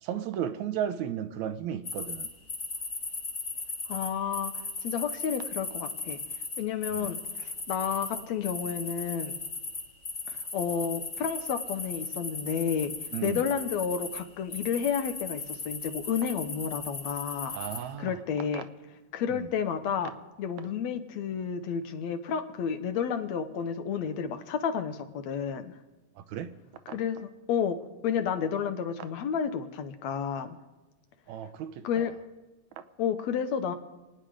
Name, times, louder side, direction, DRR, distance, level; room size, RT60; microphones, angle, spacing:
voice 1, 0.0-2.3 6.9-7.1 13.1-13.4 17.5-18.1 18.5-18.6 19.3-19.5 26.3-26.6 31.3-32.0, right 9 dB, 75° right, 2.1 m, -34 dB
sound 1, 1.9-14.2 14.5-17.8, left 3 dB, 30° left, 1.8 m, -37 dB
voice 2, 3.9-4.5 4.8-6.2 6.6-9.3 10.3-12.9 13.2-17.6 18.0-18.7 19.1-20.1 20.4-25.7 26.9-27.8 28.0-30.6 31.8-32.1 33.0-33.8, left 7 dB, 70° left, 2.1 m, -31 dB
29.0 x 9.8 x 4.9 m
omnidirectional pair, 3.4 m